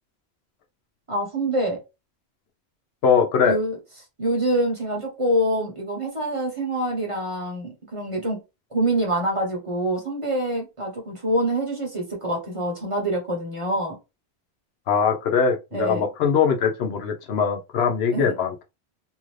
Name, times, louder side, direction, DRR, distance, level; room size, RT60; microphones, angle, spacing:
voice 1, 1.1-1.8 3.4-3.8 4.2-8.4 8.7-14.0 15.7-16.0 18.1-18.3, right 1 dB, 30° right, 0.9 m, -25 dB
voice 2, 3.0-3.6 14.9-18.6, left 6 dB, 75° left, 0.8 m, -21 dB
2.7 x 2.5 x 3.1 m
omnidirectional pair, 1.1 m